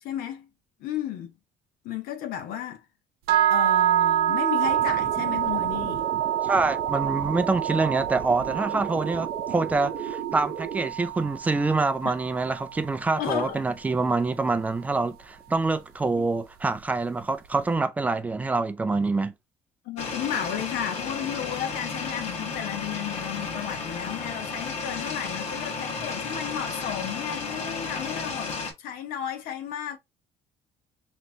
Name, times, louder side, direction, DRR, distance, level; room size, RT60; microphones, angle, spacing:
voice 1, 0.0-0.5 0.8-1.3 1.8-2.8 3.5-6.1 12.0-12.1 13.1-13.6 16.2-16.3 19.8-30.0, left 10 dB, 80° left, 1.1 m, -33 dB
sound 1, 3.3-13.4, right 11 dB, 90° right, 0.7 m, -27 dB
sound 2, 4.6-10.9, right 8 dB, 45° right, 0.7 m, -35 dB
voice 2, 6.4-19.3, right 3 dB, 10° right, 0.4 m, -26 dB
sound 3, 20.0-28.7, left 4 dB, 50° left, 1.5 m, -33 dB
4.2 x 3.1 x 2.8 m
cardioid pair, 175°, 15 cm